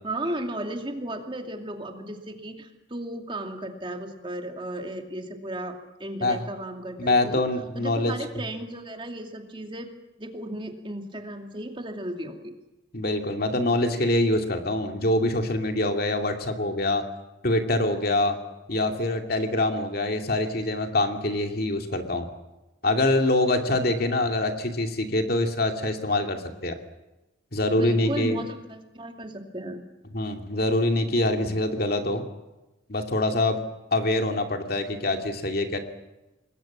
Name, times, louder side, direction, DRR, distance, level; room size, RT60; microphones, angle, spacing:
voice 1, 0.0-7.4 7.7-9.9 10.2-12.5 27.7-29.8 31.4-31.5, right 1 dB, 25° right, 4 dB, 2.5 m, -35 dB
voice 2, 7.0-8.1 12.9-17.0 17.4-18.4 18.7-22.3 22.8-26.7 27.5-28.4 30.1-32.2 32.9-33.6 33.9-35.8, left 1 dB, 50° left, 5 dB, 2.6 m, -25 dB
27.0 x 21.0 x 7.4 m, 1.0 s
head